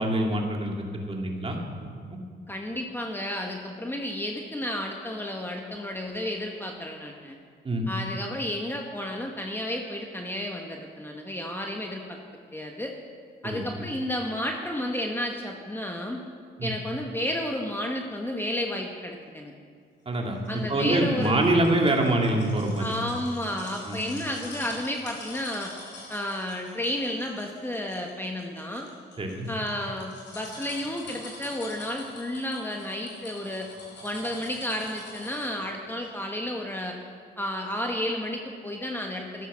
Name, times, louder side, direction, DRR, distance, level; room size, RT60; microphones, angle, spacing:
voice 1, 0.0-1.6 2.1-2.2 7.6-7.9 13.4-13.6 16.6-16.7 20.1-22.8 23.9-24.0 29.2-29.5, right 1 dB, 30° right, 1 dB, 2.3 m, -25 dB
voice 2, 2.5-7.3 7.9-12.2 12.5-12.9 13.4-16.2 16.6-19.5 20.5-21.4 22.8-25.7 26.1-28.9 29.5-33.7 34.0-36.9 37.4-39.5, left 1 dB, 10° left, 2 dB, 1.2 m, -32 dB
sound 1, 20.5-35.6 36.0-36.1, left 2 dB, 65° left, 4.8 m, -45 dB
13.0 x 11.5 x 6.2 m, 2.1 s
cardioid pair, 90°, 20 cm